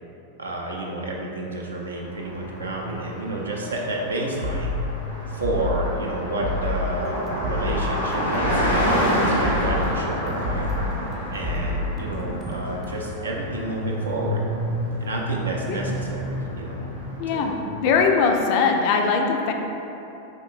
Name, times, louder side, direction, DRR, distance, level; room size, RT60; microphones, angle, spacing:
voice 1, 0.4-4.7 5.3-10.7 11.3-14.4 15.0-16.8 17.3-17.5, right 2 dB, 75° right, -1 dB, 0.5 m, -30 dB
Car passing by, 2.0-18.1, equal, 85° left, 0.7 m, -29 dB
sound 1, 4.4-4.8 5.4-5.8 6.4-6.8 7.4-7.8 8.4-8.8 9.4-9.8 10.4-10.8 11.4-11.8, left 2 dB, 45° right, 0.8 m, -28 dB
sound 2, 7.0-12.9, right 1 dB, 15° right, 0.5 m, -35 dB
voice 2, 17.2-19.5, left 5 dB, 45° left, 3 dB, 0.3 m, -21 dB
4.2 x 3.1 x 2.4 m, 3.0 s
figure-of-eight pair, 90°, 0 cm